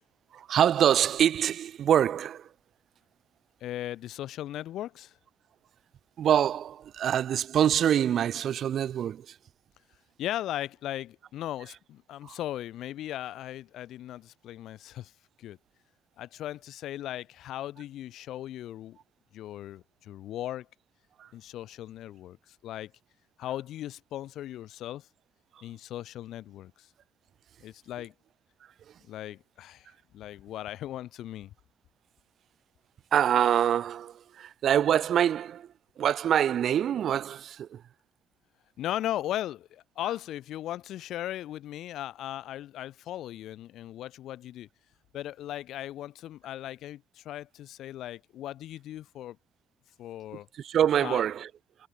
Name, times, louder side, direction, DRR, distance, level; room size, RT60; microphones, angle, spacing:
voice 1, 0.3-2.5 6.2-9.3 12.2-12.3 21.2-21.3 33.1-35.7 36.0-37.8 50.6-51.5, right 9 dB, 60° right, 1.3 m, -25 dB
voice 2, 3.6-5.2 10.2-15.1 15.4-15.6 16.2-19.0 19.3-20.7 21.3-22.9 23.4-25.1 25.6-26.9 27.6-28.1 29.0-29.9 30.1-31.5 38.8-44.7 45.1-49.4 50.0-50.5 51.0-51.2, left 13 dB, 70° left, 1.3 m, -37 dB
cardioid pair, 100°, 0 cm